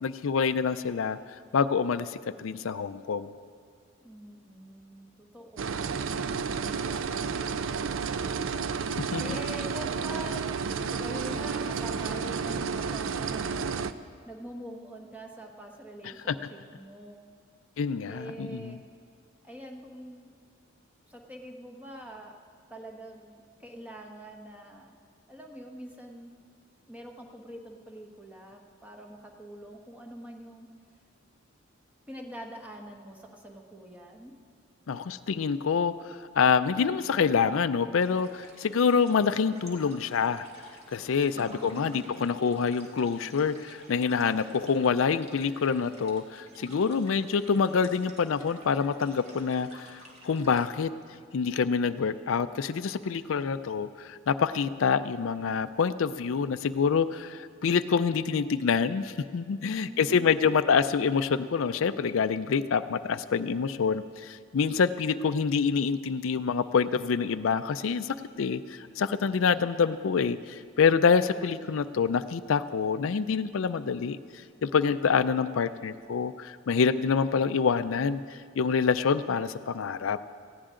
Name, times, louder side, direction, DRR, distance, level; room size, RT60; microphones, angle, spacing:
voice 1, 0.0-1.2 1.5-3.3 9.1-9.2 16.3-16.4 17.8-18.8 34.9-40.5 40.9-50.0 50.2-50.9 51.3-74.2 74.6-80.2, left 6 dB, 75° left, 12 dB, 0.4 m, -26 dB
voice 2, 4.0-10.4 10.8-17.3 18.1-18.8 19.4-20.3 21.0-22.3 22.7-25.0 25.3-26.3 26.9-30.7 32.1-34.3 41.3-42.3 59.7-60.3, right 1 dB, 5° right, 1 dB, 1.2 m, -44 dB
sound 1, 5.6-13.9, right 5 dB, 75° right, 0.5 m, -31 dB
sound 2, 38.0-50.8, right 1 dB, 30° right, 2.0 m, -53 dB
19.0 x 15.0 x 3.8 m, 2.1 s
head